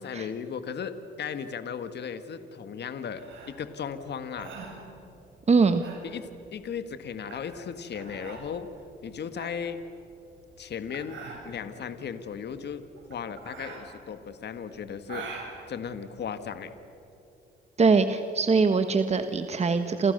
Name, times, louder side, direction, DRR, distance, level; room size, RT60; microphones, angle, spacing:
voice 1, 0.0-4.5 6.0-8.7 9.0-9.8 10.6-12.8 13.1-15.3 15.7-16.7, left 7 dB, 60° left, 10 dB, 1.8 m, -36 dB
sound 1, 3.2-16.7, right 4 dB, 75° right, 7.7 m, -45 dB
voice 2, 5.5-5.8 17.8-20.1, right 4 dB, 35° right, 8 dB, 1.4 m, -22 dB
29.5 x 27.5 x 6.8 m, 3.0 s
cardioid pair, 90°, 20 cm